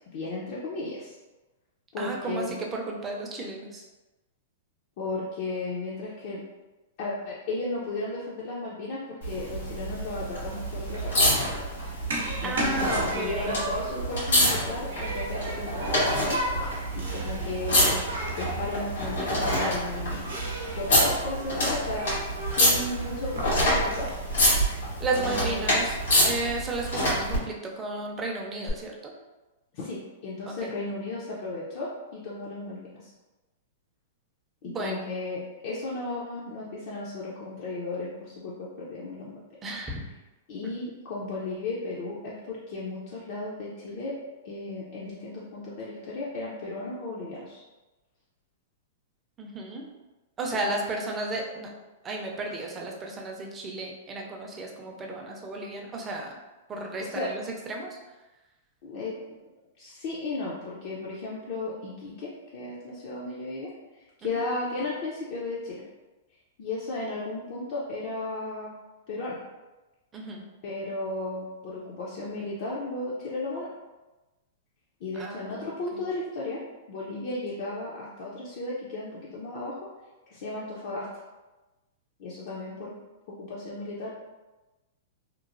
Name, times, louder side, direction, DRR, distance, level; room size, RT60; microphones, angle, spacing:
voice 1, 0.1-1.1 1.9-2.5 5.0-6.4 7.0-11.2 12.4-16.4 16.9-17.9 18.4-20.3 20.8-24.1 25.2-25.7 29.7-33.1 34.6-39.4 40.5-44.1 44.4-47.6 50.7-50.8 57.0-57.3 58.8-59.2 59.8-63.7 64.2-65.8 66.6-68.7 69.1-69.4 70.6-73.7 75.0-76.6 76.9-79.8 80.3-81.1 82.2-82.9 83.3-84.1, left 2 dB, 55° left, -6 dB, 0.5 m, -35 dB
voice 2, 2.0-3.8 12.4-13.6 25.0-26.0 26.2-29.1 30.4-30.7 34.6-35.0 39.6-40.1 49.4-49.9 50.4-51.7 52.0-56.3 56.7-57.4 57.7-58.0 70.1-70.5 75.1-76.0, right 2 dB, 20° right, 0 dB, 0.5 m, -33 dB
sound 1, 9.2-27.4 28.7-28.8, equal, 85° left, 1.5 m, -27 dB
Human group actions, 10.4-24.7, right 2 dB, 90° right, 0.6 m, -35 dB
2.9 x 2.0 x 2.5 m, 1.1 s
hypercardioid pair, 140°, 0 cm